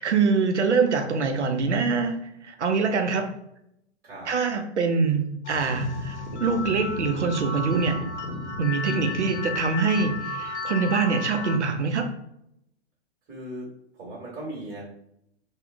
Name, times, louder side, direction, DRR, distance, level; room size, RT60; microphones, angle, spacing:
voice 1, 0.0-2.2 2.4-3.3 4.3-8.0 8.6-12.1, right 4 dB, 85° right, 6 dB, 0.7 m, -24 dB
voice 2, 4.0-4.4 13.3-13.7 13.9-14.8, right 1 dB, 25° right, -4 dB, 1.4 m, -37 dB
sound 1, 5.4-11.6, left 3 dB, 90° left, 0.7 m, -33 dB
3.5 x 2.3 x 3.5 m, 0.78 s
figure-of-eight pair, 115°, 34 cm